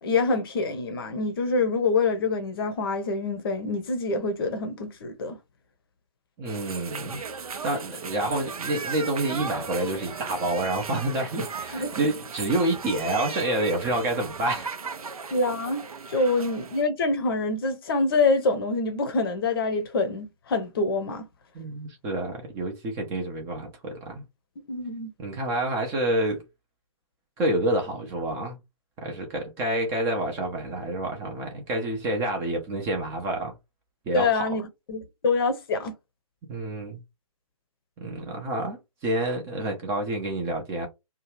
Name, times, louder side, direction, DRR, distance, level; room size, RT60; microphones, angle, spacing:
voice 1, 0.0-5.4 11.7-11.9 15.3-15.8 16.1-21.2 24.7-25.1 34.1-34.6 34.9-35.9, left 3 dB, 40° left, 0.7 m, -25 dB
voice 2, 6.4-7.2 7.6-14.7 21.5-24.2 25.2-26.4 27.4-28.6 29.0-33.5 34.1-34.4 36.5-37.0 38.0-40.9, right 1 dB, 15° right, 0.5 m, -28 dB
sound 1, 6.5-16.8, right 5 dB, 70° right, 0.6 m, -37 dB
2.7 x 2.3 x 3.0 m
figure-of-eight pair, 135°, 19 cm